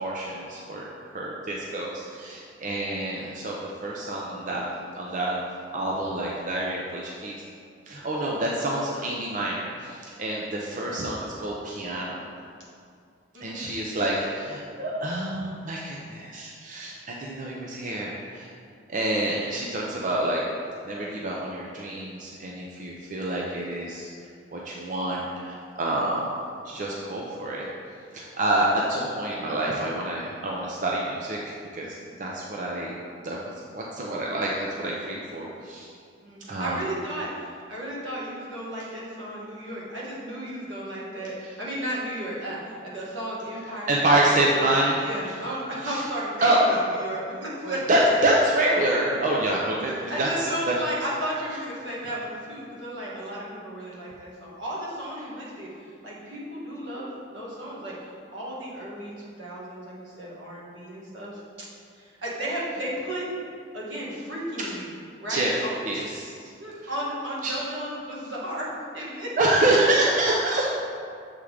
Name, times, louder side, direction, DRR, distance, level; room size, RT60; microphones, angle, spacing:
voice 1, 0.0-4.7 4.9-5.4 5.7-7.4 7.9-12.3 13.4-18.5 18.9-20.4 20.8-24.1 24.5-26.3 26.6-27.7 28.1-33.0 33.2-35.9 36.5-36.8 43.9-45.0 45.8-46.0 46.4-46.6 47.6-50.7 65.3-66.5 67.4-67.5 69.4-70.7, right 1 dB, 45° right, -3 dB, 0.6 m, -27 dB
voice 2, 36.2-44.5 45.0-48.0 50.1-55.7 56.0-61.7 61.9-63.3 63.7-64.9 65.2-66.0 66.6-69.6, right 1 dB, 85° right, -6 dB, 1.6 m, -34 dB
7.0 x 3.6 x 4.9 m, 2.3 s
head